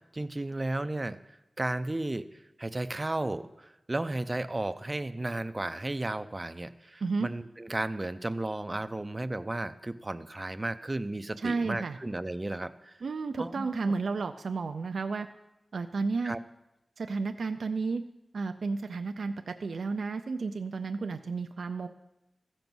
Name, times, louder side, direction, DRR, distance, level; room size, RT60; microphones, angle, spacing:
voice 1, 0.1-2.3 2.6-13.0 13.4-13.9 16.2-16.4, right 2 dB, 25° right, 11 dB, 0.5 m, -34 dB
voice 2, 7.0-7.3 11.4-12.0 13.0-15.3 15.7-16.3 17.0-18.0 18.3-21.9, right 4 dB, 80° right, 7 dB, 0.4 m, -32 dB
14.5 x 5.4 x 6.1 m, 0.93 s
wide cardioid pair, 75°, 0 cm